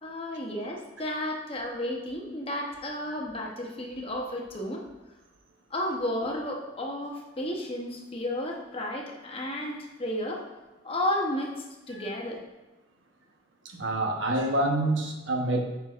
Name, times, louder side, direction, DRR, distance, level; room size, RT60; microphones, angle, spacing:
voice 1, 0.0-4.8 5.7-10.4 10.8-11.6 11.9-12.4, left 1 dB, 30° left, 0 dB, 0.9 m, -32 dB
voice 2, 13.6-15.6, right 1 dB, 75° right, 2 dB, 1.0 m, -27 dB
8.9 x 5.8 x 2.5 m, 1.1 s
head